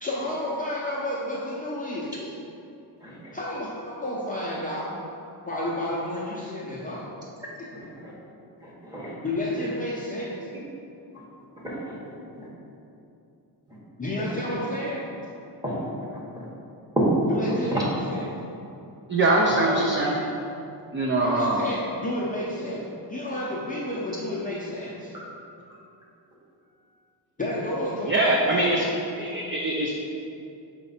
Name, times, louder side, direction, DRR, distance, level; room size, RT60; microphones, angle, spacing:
voice 1, 0.0-2.1 3.3-4.9 5.5-7.1 7.6-7.7 9.2-10.3 14.0-15.1 17.3-17.8 18.1-18.2 19.5-20.1 21.2-25.1 27.4-28.9, left 1 dB, 20° left, -7 dB, 0.6 m, -31 dB
voice 2, 3.0-3.4 7.7-8.1 8.6-9.1 11.1-11.2 11.6-12.0 12.3-12.5 13.7-13.8 15.6-15.9 16.3-16.5 16.9-17.1 17.4-18.3, right 1 dB, 10° right, -7 dB, 1.2 m, -29 dB
voice 3, 19.1-20.2 20.9-21.7 28.1-28.9 29.2-30.0, right 2 dB, 30° right, -1 dB, 0.4 m, -23 dB
5.7 x 4.3 x 4.2 m, 2.7 s
wide cardioid pair, 175°, 44 cm